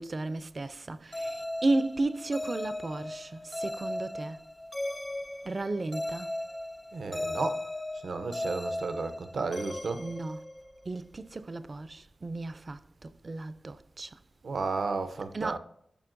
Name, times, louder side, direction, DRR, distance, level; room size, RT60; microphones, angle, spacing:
voice 1, 0.0-4.4 5.4-6.3 10.0-10.4 10.9-14.2 15.3-15.6, right 2 dB, 45° right, 0.4 m, -34 dB
sound 1, 1.1-10.9, left 1 dB, 20° left, 0.5 m, -37 dB
voice 2, 6.9-7.6 8.0-10.0 14.4-15.6, right 4 dB, 80° right, 0.7 m, -33 dB
12.0 x 5.6 x 2.5 m
wide cardioid pair, 90°, 0 cm